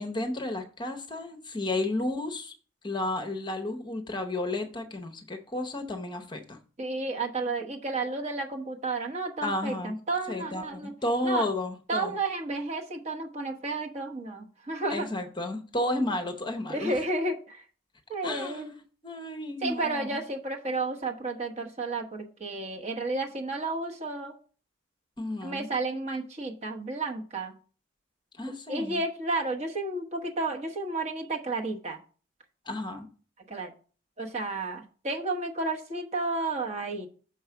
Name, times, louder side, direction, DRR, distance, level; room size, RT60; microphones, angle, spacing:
voice 1, 0.0-2.5 2.8-6.6 9.4-10.0 10.3-12.2 14.9-16.9 18.2-18.8 19.0-20.2 25.2-25.7 28.4-29.0 32.7-33.1, left 1 dB, 25° left, 6 dB, 0.8 m, -32 dB
voice 2, 6.8-10.9 11.2-11.5 11.9-15.1 16.7-17.6 18.1-18.7 19.6-24.3 25.4-27.6 28.7-32.0 33.5-33.7 34.2-37.1, right 2 dB, 35° right, 1 dB, 1.1 m, -32 dB
6.3 x 4.7 x 5.7 m, 0.40 s
head